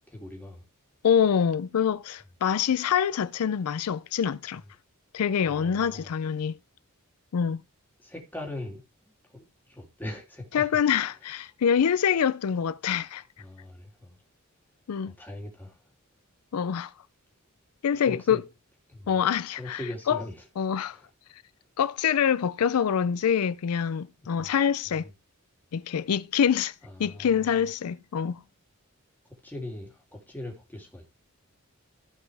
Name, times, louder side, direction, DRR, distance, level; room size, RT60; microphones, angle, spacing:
voice 1, 0.1-0.6 5.5-6.1 8.0-10.8 13.4-14.2 15.0-15.8 18.0-18.4 18.9-19.1 19.6-20.5 20.9-21.1 24.4-24.5 24.8-25.1 26.9-27.5 29.4-31.1, left 1 dB, 10° left, 3.0 m, -40 dB
voice 2, 1.0-4.6 5.1-6.6 7.3-7.6 10.5-13.2 14.9-15.1 16.5-16.9 17.8-18.4 19.1-19.8 20.1-20.2 20.6-21.0 21.8-25.1 25.7-26.7 27.0-28.4, left 8 dB, 85° left, 0.4 m, -25 dB
15.0 x 5.3 x 3.5 m
head